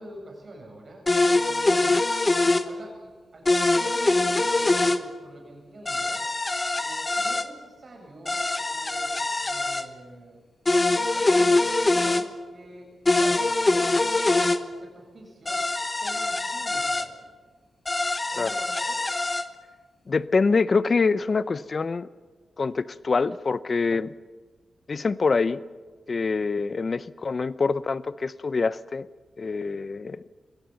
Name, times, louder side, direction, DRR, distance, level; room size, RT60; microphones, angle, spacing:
voice 1, 0.0-1.9 2.6-6.2 6.8-10.4 11.0-12.9 13.2-15.6 16.0-17.3 18.3-19.0, right 1 dB, 50° right, 1 dB, 7.8 m, -46 dB
sound 1, 1.1-2.7 3.5-5.0 5.9-7.5 8.3-9.8 10.7-12.2 13.1-14.6 15.5-17.1 17.9-19.4, left 2 dB, 30° left, 1.1 m, -23 dB
voice 2, 20.1-22.1 22.6-24.1 24.9-25.6 26.1-29.1 29.4-30.2, left 4 dB, 45° left, 17 dB, 0.7 m, -25 dB
23.0 x 17.0 x 7.1 m, 1.4 s
cardioid pair, 65°, 0 cm